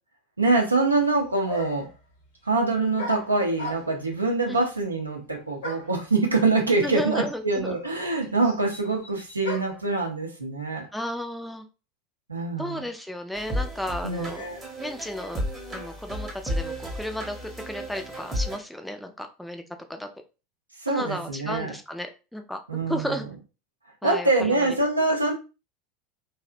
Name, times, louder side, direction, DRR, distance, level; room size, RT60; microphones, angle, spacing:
voice 1, 0.4-1.9 2.5-10.9 12.3-12.8 14.0-14.6 20.8-21.7 22.7-23.1 24.0-25.3, right 3 dB, 85° right, 0.5 m, -24 dB
sound 1, 1.0-1.1 1.5-2.0 3.0-4.1 5.6-6.0 7.0-7.1 7.3-9.9, left 3 dB, 65° left, 0.8 m, -37 dB
voice 2, 6.7-7.8 10.9-11.6 12.6-14.4 14.8-15.4 15.7-19.6 19.9-20.1 20.9-22.6 22.9-23.3 24.0-24.8, left 1 dB, ahead, 0.3 m, -33 dB
sound 2, 13.3-18.6, equal, 20° right, 0.7 m, -33 dB
2.6 x 2.0 x 2.4 m
figure-of-eight pair, 80°, 0 cm